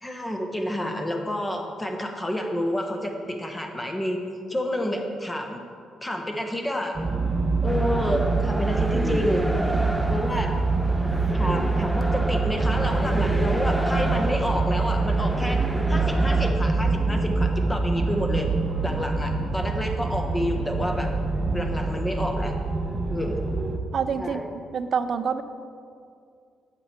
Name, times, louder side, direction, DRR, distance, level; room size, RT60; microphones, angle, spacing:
voice 1, 0.0-4.2 4.5-5.6 6.0-7.0 7.6-9.5 10.1-10.5 11.3-15.6 15.9-18.5 18.8-21.1 21.5-22.5 23.1-23.4 24.2-24.5, equal, 15° left, 3 dB, 1.1 m, -29 dB
sound 1, 6.9-23.8, right 3 dB, 30° right, 0.9 m, -25 dB
sound 2, 7.7-16.5, equal, 5° right, 0.7 m, -32 dB
voice 2, 23.9-24.4 24.7-25.4, right 6 dB, 55° right, 11 dB, 0.5 m, -26 dB
9.1 x 6.9 x 4.3 m, 2.3 s
cardioid pair, 90°, 0 cm